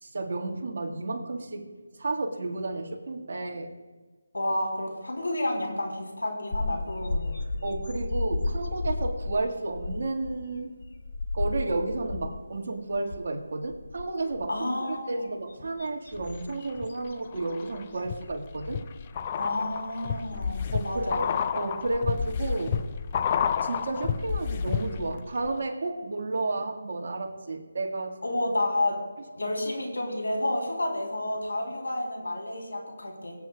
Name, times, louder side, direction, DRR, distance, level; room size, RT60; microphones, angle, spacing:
voice 1, 0.0-1.6 2.0-3.7 7.6-10.7 11.3-14.5 14.9-18.8 20.7-21.3 21.5-22.8 23.6-28.2, right 2 dB, 50° right, 0 dB, 1.8 m, -32 dB
voice 2, 4.3-7.4 14.5-15.3 19.4-21.3 28.2-29.0 29.3-33.3, left 1 dB, 80° left, 0 dB, 3.6 m, -30 dB
sound 1, 6.5-12.6 12.9-13.3 13.6-14.6 15.2-17.5 17.9-18.1 19.2-19.3 21.4-21.5 21.9-22.8, left 2 dB, 45° left, 0.8 m, -33 dB
sound 2, 16.1-16.9 17.3-25.2 25.4-25.5, left 7 dB, 25° left, 0.4 m, -30 dB
23.5 x 8.3 x 2.4 m, 1.4 s
figure-of-eight pair, 165°, 0 cm